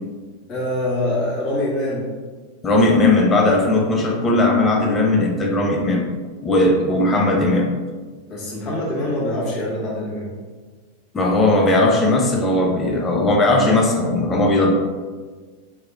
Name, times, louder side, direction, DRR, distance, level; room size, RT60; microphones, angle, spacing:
voice 1, 0.5-2.1 8.3-10.3, left 1 dB, 35° left, -5 dB, 1.3 m, -24 dB
voice 2, 2.6-6.0 6.4-7.7 11.1-14.7, left 2 dB, 20° left, 0 dB, 0.6 m, -17 dB
3.1 x 2.9 x 3.5 m, 1.4 s
figure-of-eight pair, 90°, 0 cm